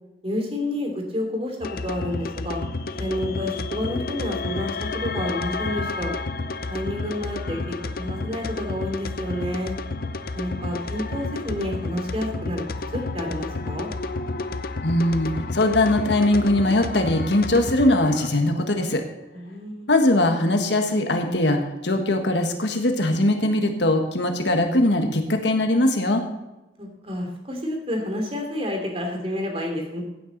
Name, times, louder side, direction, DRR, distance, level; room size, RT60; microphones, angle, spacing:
voice 1, 0.2-2.6 3.0-6.2 6.7-9.8 10.3-12.6 12.9-13.9 19.3-19.9 26.8-30.0, left 1 dB, 30° right, 2 dB, 2.8 m, -29 dB
sound 1, 1.6-18.3, left 3 dB, 50° left, 0.7 m, -31 dB
voice 2, 14.8-19.0 19.9-26.2, left 1 dB, 70° left, 5 dB, 1.6 m, -21 dB
16.0 x 8.9 x 4.1 m, 1.0 s
head